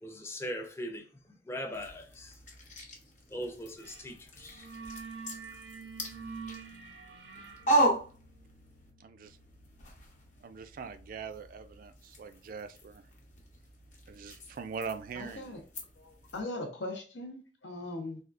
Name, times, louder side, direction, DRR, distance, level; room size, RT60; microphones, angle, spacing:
voice 1, 0.0-1.0 1.4-2.4 3.3-4.7, equal, 15° left, 0.5 m, -40 dB
sound 1, 1.7-8.9 9.2-16.4, right 1 dB, 45° left, 0.8 m, -37 dB
sound 2, 3.8-4.1 4.4-11.0, right 5 dB, 90° right, 0.6 m, -48 dB
voice 2, 9.0-9.4 10.4-13.0 14.1-15.6, right 5 dB, 50° right, 0.3 m, -42 dB
voice 3, 15.1-15.6 16.0-18.2, left 2 dB, 80° left, 0.8 m, -40 dB
3.5 x 2.3 x 2.4 m
head